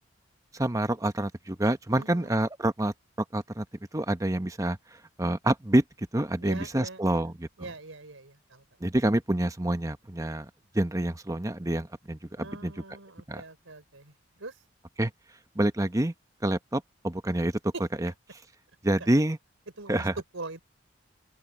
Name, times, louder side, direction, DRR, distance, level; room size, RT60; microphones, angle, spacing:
voice 1, 0.5-2.9 3.3-3.6 3.9-4.8 5.2-5.8 6.1-7.5 8.8-10.5 10.7-12.7 13.3-13.4 15.0-15.1 15.5-16.1 16.4-17.5 18.0-18.1 18.8-19.4 19.9-20.2, right 1 dB, 15° right, 0.9 m, -27 dB
voice 2, 1.9-2.3 6.4-7.2 7.6-8.6 12.4-14.1 14.4-14.5 17.7-17.8 19.0-19.1 19.8-20.0 20.3-20.6, right 3 dB, 90° right, 4.5 m, -42 dB
open air
head